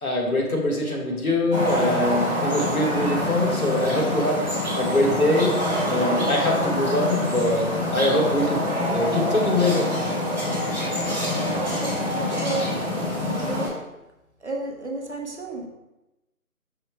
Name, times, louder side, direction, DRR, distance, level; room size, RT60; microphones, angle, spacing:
voice 1, 0.0-4.4 4.7-5.5 5.9-8.6 8.9-9.9, left 1 dB, 70° left, -1 dB, 1.3 m, -23 dB
sound 1, 1.5-13.7, left 1 dB, 30° right, 1.1 m, -26 dB
voice 2, 11.3-12.7 13.2-13.9 14.4-15.7, right 2 dB, 50° right, 1 dB, 0.6 m, -32 dB
5.5 x 2.1 x 4.4 m, 0.99 s
figure-of-eight pair, 160°, 45 cm